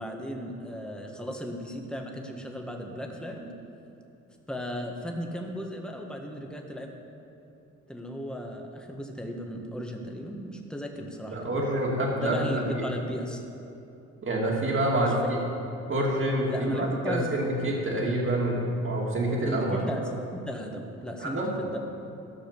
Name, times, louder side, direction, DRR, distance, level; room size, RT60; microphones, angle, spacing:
voice 1, 0.0-3.5 4.5-6.9 7.9-11.6 12.2-13.4 14.9-15.1 16.5-17.3 19.4-20.0 20.3-21.8, equal, 5° left, 1 dB, 1.4 m, -35 dB
voice 2, 11.3-12.8 14.2-15.4 15.9-19.8 21.2-21.5, right 1 dB, 40° right, -2 dB, 2.5 m, -27 dB
14.0 x 6.3 x 6.7 m, 2.8 s
cardioid pair, 90°, 30 cm